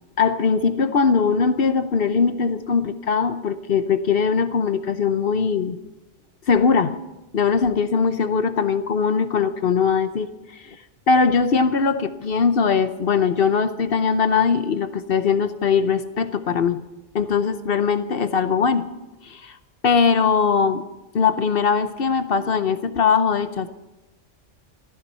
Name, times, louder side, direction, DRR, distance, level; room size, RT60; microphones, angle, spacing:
voice 1, 0.2-5.8 6.5-6.9 7.3-10.3 10.6-10.8 11.1-16.8 17.1-18.9 19.2-19.6 19.8-20.8 21.1-23.7, left 5 dB, 55° left, 11 dB, 0.9 m, -20 dB
14.5 x 14.0 x 5.5 m, 0.99 s
omnidirectional pair, 1.3 m